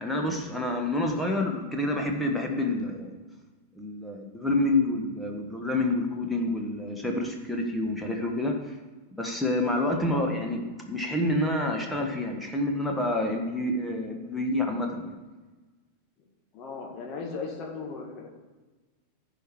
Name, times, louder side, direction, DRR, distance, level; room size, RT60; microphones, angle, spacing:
voice 1, 0.0-3.1 3.7-8.8 9.2-15.1, left 1 dB, 5° left, 1 dB, 1.4 m, -28 dB
voice 2, 9.9-10.2 16.5-18.3, left 4 dB, 35° left, 1 dB, 2.0 m, -37 dB
15.0 x 5.0 x 4.8 m, 1.3 s
figure-of-eight pair, 90°, 0 cm